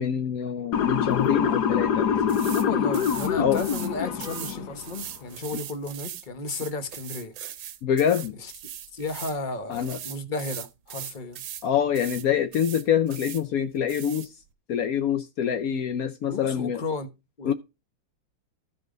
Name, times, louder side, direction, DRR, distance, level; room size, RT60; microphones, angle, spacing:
voice 1, 0.0-2.1 3.4-3.6 7.8-8.4 9.7-10.0 11.6-14.3 14.7-16.8 17.5-17.6, left 9 dB, 85° left, 0.7 m, -25 dB
Motor vehicle (road) / Siren, 0.7-4.9, left 7 dB, 60° left, 1.2 m, -25 dB
sound 1, 2.3-2.7 2.9-3.9 4.2-9.4 9.7-11.7 11.9-12.3 12.5-13.4 13.9-14.3, right 10 dB, 70° right, 1.6 m, -39 dB
voice 2, 2.5-7.3 8.4-8.5 8.9-11.4 16.3-17.1 17.4-17.5, left 3 dB, 30° left, 0.9 m, -33 dB
14.5 x 5.0 x 3.8 m
omnidirectional pair, 2.3 m